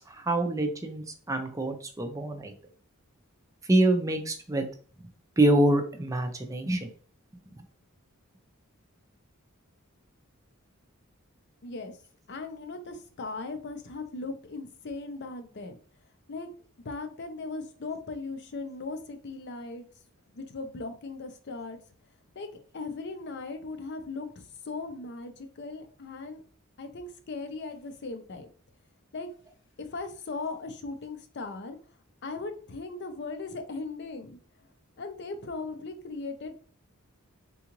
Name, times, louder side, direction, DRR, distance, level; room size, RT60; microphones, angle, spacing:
voice 1, 0.1-2.5 3.7-4.7 5.4-6.9, right 1 dB, 15° right, 5 dB, 0.5 m, -26 dB
voice 2, 11.6-11.9 12.3-15.8 16.3-16.5 16.8-19.9 20.3-21.8 22.4-26.4 26.8-28.5 29.1-29.3 29.8-31.8 32.2-34.4 35.0-36.6, left 3 dB, 55° left, 7 dB, 0.5 m, -38 dB
3.7 x 2.4 x 2.9 m, 0.42 s
head